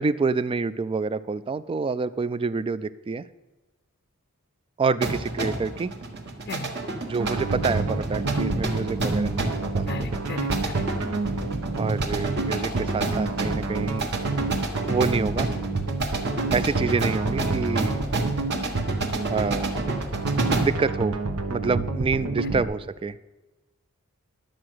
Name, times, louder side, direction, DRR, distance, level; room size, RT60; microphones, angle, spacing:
voice 1, 0.0-3.3 4.8-5.9 7.0-10.2 11.8-14.1 14.9-15.5 16.5-18.0 19.3-19.7 20.6-21.2 21.5-23.2, right 4 dB, 25° right, 16 dB, 0.3 m, -27 dB
sound 1, 5.0-20.9, right 2 dB, 50° right, 1.3 m, -30 dB
sound 2, 7.2-22.6, right 3 dB, 85° right, 1.1 m, -29 dB
voice 2, 9.9-10.9 22.4-22.6, left 3 dB, 50° left, 8 dB, 0.6 m, -36 dB
12.0 x 7.6 x 6.3 m, 1.1 s
head